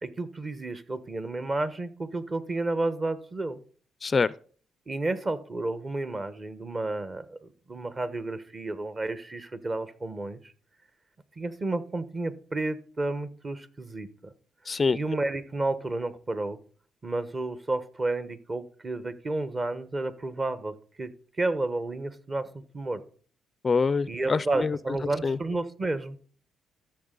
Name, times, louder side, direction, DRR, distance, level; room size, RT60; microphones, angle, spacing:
voice 1, 0.0-3.6 4.9-10.4 11.4-14.3 14.6-16.6 17.0-21.1 21.4-23.0 24.1-26.2, right 2 dB, 30° right, 1.1 m, -31 dB
voice 2, 4.0-4.3 14.7-15.0 23.6-24.8 25.2-25.4, left 4 dB, 30° left, 0.4 m, -25 dB
13.5 x 6.6 x 3.9 m
cardioid pair, 90°, 0 cm